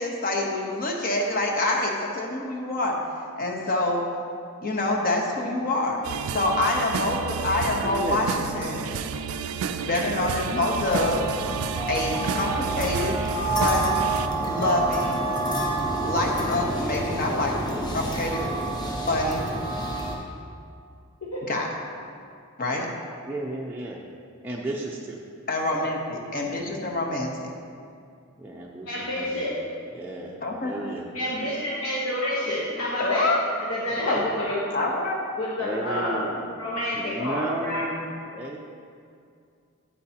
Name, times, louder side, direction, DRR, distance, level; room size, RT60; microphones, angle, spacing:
voice 1, 0.0-3.0 3.4-4.0 4.6-8.3 8.5-8.9 9.8-11.2 11.9-13.2 13.5-14.0 14.4-15.3 16.0-18.4 19.0-19.4 21.5-21.7 22.6-22.9 25.5-27.5 30.4-30.7 33.0-33.4 34.1-34.2 34.7-35.2, left 2 dB, 45° left, 0 dB, 1.0 m, -26 dB
sound 1, 6.0-14.3, right 6 dB, 75° right, 0.3 m, -31 dB
voice 2, 7.8-8.5 23.3-24.0 24.4-25.2 25.7-25.9 26.4-26.8 28.4-29.5 29.9-31.3 33.9-34.4 35.6-36.6 36.9-38.6, right 1 dB, 10° right, -4 dB, 0.5 m, -34 dB
sound 2, 10.9-20.2, right 2 dB, 20° left, 1.0 m, -28 dB
voice 3, 28.9-29.6 31.1-33.3 33.7-34.7 35.4-36.2 36.6-37.9, left 1 dB, 75° left, -6 dB, 1.2 m, -28 dB
8.8 x 8.5 x 2.8 m, 2.3 s
head